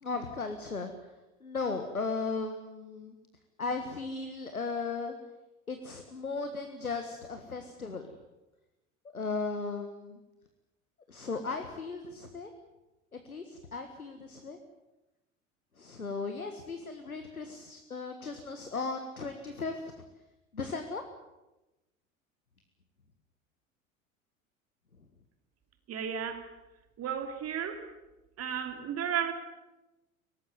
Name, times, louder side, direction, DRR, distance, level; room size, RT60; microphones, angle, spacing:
voice 1, 0.0-0.9 1.4-3.1 3.6-5.1 5.7-8.1 9.1-10.2 11.1-12.5 13.1-14.6 15.8-19.9 20.5-21.0, left 4 dB, 85° left, 7 dB, 1.7 m, -36 dB
voice 2, 25.9-26.5 27.0-27.9 28.4-29.3, right 8 dB, 35° right, 7 dB, 2.9 m, -33 dB
23.5 x 18.5 x 9.4 m, 1.0 s
figure-of-eight pair, 75°, 42 cm